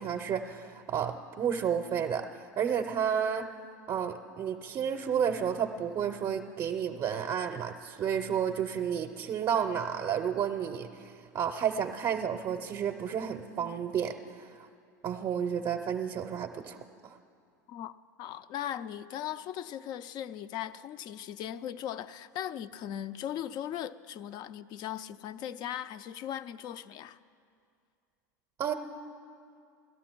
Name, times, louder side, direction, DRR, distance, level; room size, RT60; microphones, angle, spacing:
voice 1, 0.0-3.4 3.9-14.7 15.0-17.2 28.6-28.7, right 8 dB, 40° right, 0.6 m, -31 dB
voice 2, 18.2-27.2, left 10 dB, 50° left, 0.4 m, -38 dB
17.5 x 13.0 x 4.5 m
hypercardioid pair, 90°, 10 cm